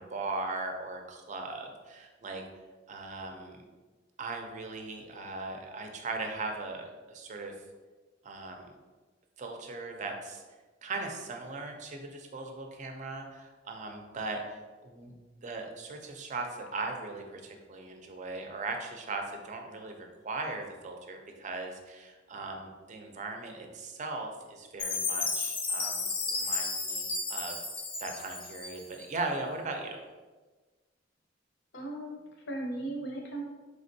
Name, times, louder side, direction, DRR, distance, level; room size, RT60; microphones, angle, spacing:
voice 1, 0.0-2.4 2.9-3.6 4.2-7.5 8.2-8.7 9.4-10.4 10.8-15.1 15.4-27.6 28.0-30.0, right 3 dB, 40° right, 3 dB, 0.5 m, -39 dB
Chime, 24.8-29.0, left 3 dB, 30° left, 0.5 m, -33 dB
voice 2, 31.7-33.4, right 2 dB, 65° left, 0 dB, 0.8 m, -37 dB
4.2 x 3.4 x 2.6 m, 1.3 s
head